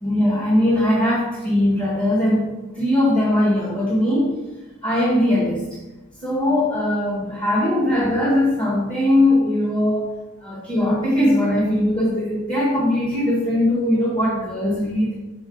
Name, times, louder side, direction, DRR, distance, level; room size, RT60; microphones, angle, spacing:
voice 1, 0.0-4.4 4.8-5.6 6.2-10.1 10.4-15.1, left 1 dB, 25° left, -6 dB, 1.4 m, -20 dB
6.3 x 4.1 x 3.9 m, 1.0 s
head